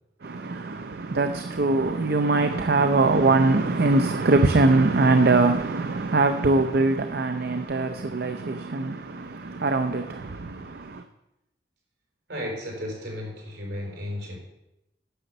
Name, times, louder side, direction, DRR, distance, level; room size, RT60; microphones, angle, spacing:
voice 1, 0.2-11.0, right 3 dB, 60° right, 0.6 m, -22 dB
voice 2, 12.3-14.4, left 1 dB, 75° right, 4.5 m, -34 dB
10.0 x 6.4 x 6.7 m
head